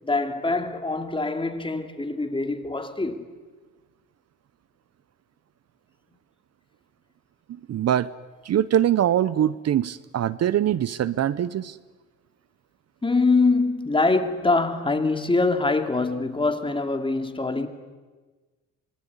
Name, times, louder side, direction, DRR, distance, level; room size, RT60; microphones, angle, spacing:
voice 1, 0.0-3.2 13.0-17.7, left 3 dB, 15° left, 2.8 m, -24 dB
voice 2, 7.5-8.1 8.4-11.8, right 11 dB, 55° right, 0.8 m, -23 dB
25.5 x 22.5 x 9.8 m
cardioid pair, 90°, 30 cm